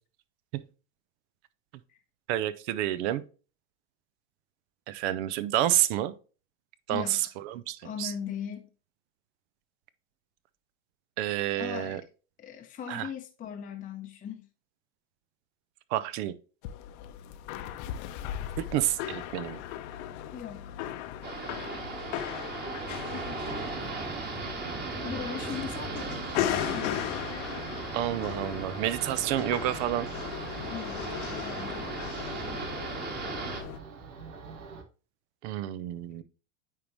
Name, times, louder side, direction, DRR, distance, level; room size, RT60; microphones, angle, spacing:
voice 1, 2.3-3.2 4.9-6.1 6.9-8.1 11.2-12.0 12.9-13.1 15.9-16.3 18.6-19.6 27.9-30.1 35.4-36.2, right 13 dB, 60° right, 0.7 m, -29 dB
voice 2, 6.9-7.3 7.8-8.6 11.6-12.0 12.4-14.4 20.3-20.8 23.1-23.5 25.0-27.0 30.7-31.9, left 8 dB, 20° left, 0.7 m, -39 dB
sound 1, 16.6-33.8, left 11 dB, 60° left, 0.8 m, -37 dB
sound 2, 21.2-33.6, right 3 dB, 25° right, 1.7 m, -37 dB
sound 3, 23.4-34.8, right 5 dB, 80° right, 1.6 m, -45 dB
9.3 x 3.6 x 3.1 m
supercardioid pair, 115°, 38 cm